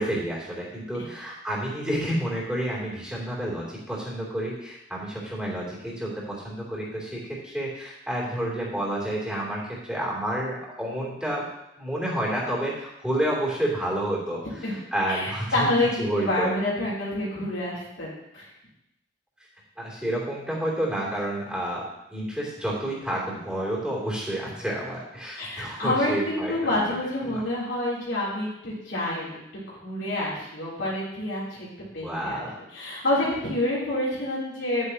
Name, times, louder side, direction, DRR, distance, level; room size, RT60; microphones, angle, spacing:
voice 1, 0.0-11.4 11.8-15.7 16.0-16.5 19.8-26.8 27.2-27.4 32.0-32.5, right 1 dB, 5° right, -5 dB, 3.0 m, -30 dB
voice 2, 15.1-18.1 18.3-18.5 25.4-31.7 31.9-32.4 32.7-34.9, left 1 dB, 85° left, -7 dB, 3.4 m, -28 dB
10.0 x 9.4 x 2.9 m, 0.84 s
head